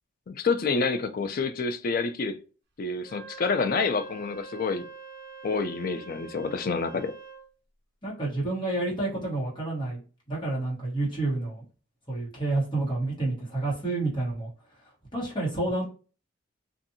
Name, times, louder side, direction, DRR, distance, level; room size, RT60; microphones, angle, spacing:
voice 1, 0.3-2.4 2.8-4.9 5.4-7.1, left 4 dB, 40° left, 0.3 m, -28 dB
Wind instrument woodwind instrument, 3.0-7.5, right 5 dB, 55° right, 0.5 m, -45 dB
voice 2, 8.0-10.0 10.3-11.6 12.1-14.5 15.1-15.8, right 2 dB, 20° left, 1.2 m, -29 dB
2.7 x 2.5 x 2.6 m
head